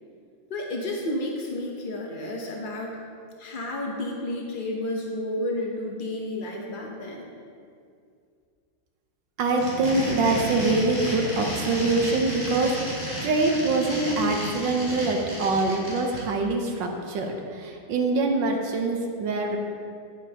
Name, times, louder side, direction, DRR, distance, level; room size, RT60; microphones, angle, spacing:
voice 1, 0.5-3.0 3.4-7.3, left 1 dB, 80° left, -1 dB, 0.4 m, -31 dB
voice 2, 9.4-17.3 17.6-19.6, right 3 dB, 65° right, 2 dB, 1.4 m, -24 dB
sound 1, 9.5-16.2, equal, 20° left, 2.5 m, -33 dB
9.6 x 9.3 x 2.9 m, 2.3 s
omnidirectional pair, 2.3 m